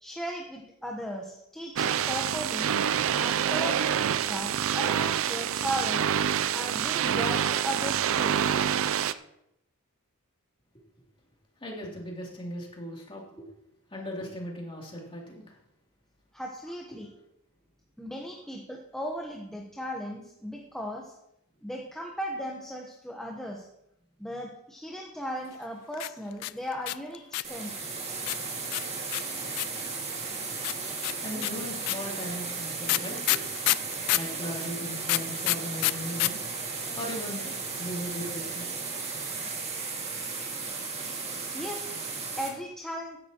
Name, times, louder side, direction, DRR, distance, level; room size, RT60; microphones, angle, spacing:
voice 1, 0.0-2.7 3.1-6.1 6.5-8.4 16.3-17.1 18.0-21.1 21.6-23.7 24.2-27.7 41.5-42.0 42.4-43.2, equal, ahead, -1 dB, 1.0 m, -36 dB
sound 1, 1.8-9.1, right 9 dB, 60° right, 0.4 m, -27 dB
voice 2, 11.6-13.5 13.9-15.6 16.9-17.1 24.2-24.3 31.2-33.4 34.1-36.4 37.0-38.7 40.8-40.9, equal, 25° left, -2 dB, 3.0 m, -38 dB
sound 2, 25.9-27.6 28.3-29.9 30.6-34.3 35.0-36.3 36.6-36.7 36.8-37.3, left 18 dB, 85° left, 0.3 m, -27 dB
sound 3, 27.4-42.5, right 4 dB, 30° right, 2.0 m, -35 dB
15.5 x 11.0 x 3.0 m, 0.80 s
head